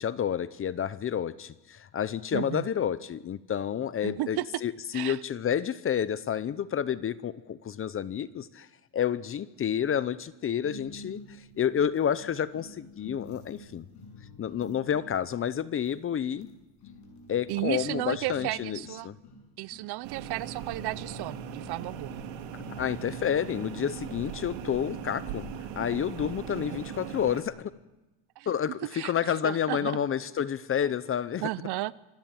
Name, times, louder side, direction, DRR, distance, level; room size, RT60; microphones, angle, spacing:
voice 1, 0.0-8.7 8.9-13.9 14.4-16.5 17.3-18.8 19.0-19.2 22.7-25.5 25.8-27.7 28.5-31.4, left 9 dB, 25° left, 17 dB, 0.7 m, -30 dB
voice 2, 2.3-2.7 4.0-4.6 4.9-5.2 17.5-19.1 19.6-22.2 28.4-28.5 28.8-30.0 30.8-30.9 31.4-31.9, right 18 dB, 50° right, 19 dB, 0.7 m, -34 dB
sound 1, 10.6-26.1, left 2 dB, 55° left, 6.4 m, -49 dB
sound 2, 20.0-27.4, right 8 dB, 85° right, 2.8 m, -39 dB
25.5 x 15.0 x 9.0 m, 1.1 s
cardioid pair, 125°, 49 cm